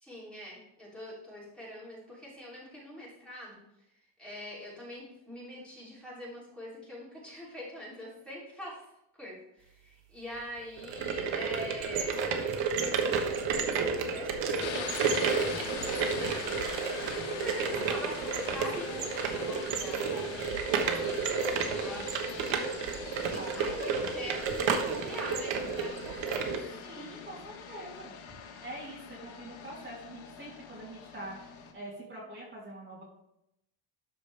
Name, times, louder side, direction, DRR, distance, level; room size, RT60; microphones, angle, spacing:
voice 1, 0.0-3.6 4.2-8.8 9.2-22.7 23.3-26.8, equal, ahead, -7 dB, 3.2 m, -44 dB
sound 1, 10.8-26.6, right 5 dB, 70° right, 1.3 m, -31 dB
sound 2, 14.6-31.7, left 7 dB, 90° left, 1.5 m, -43 dB
voice 2, 21.7-22.2 23.3-23.9 26.8-28.1 28.6-33.0, right 1 dB, 25° right, -6 dB, 3.0 m, -44 dB
12.5 x 5.1 x 3.4 m, 0.82 s
cardioid pair, 150°, 46 cm